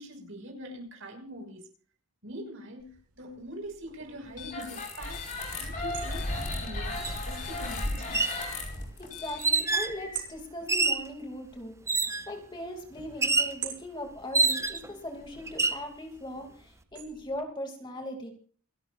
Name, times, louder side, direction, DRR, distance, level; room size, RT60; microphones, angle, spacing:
voice 1, 0.0-1.6 2.2-8.3, equal, 65° right, 4 dB, 6.1 m, -43 dB
sound 1, 2.8-17.4, right 10 dB, 85° right, 6.1 m, -49 dB
sound 2, 4.3-10.2, left 2 dB, 35° left, 5.1 m, -35 dB
sound 3, 7.0-7.2 8.0-8.4 9.4-10.0 10.7-11.1 11.9-12.3 13.2-13.6 14.3-14.9 15.5-15.8, right 3 dB, 15° right, 0.6 m, -26 dB
voice 2, 9.0-18.3, left 1 dB, 20° left, 3 dB, 2.7 m, -39 dB
28.0 x 12.5 x 2.6 m, 0.42 s
head